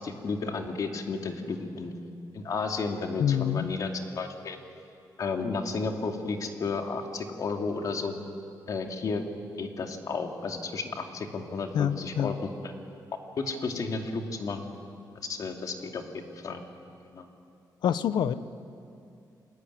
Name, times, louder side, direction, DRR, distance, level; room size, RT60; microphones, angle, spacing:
voice 1, 0.0-1.9 2.3-4.6 5.2-8.1 8.7-9.2 9.6-12.7 13.4-14.6 15.3-16.0 16.4-16.6 17.1-17.3, left 4 dB, 55° left, 4 dB, 2.7 m, -32 dB
voice 2, 3.2-3.7 11.7-12.3 17.8-18.3, left 9 dB, 85° left, 14 dB, 1.0 m, -26 dB
28.0 x 21.5 x 9.6 m, 2.4 s
wide cardioid pair, 145°, 7 cm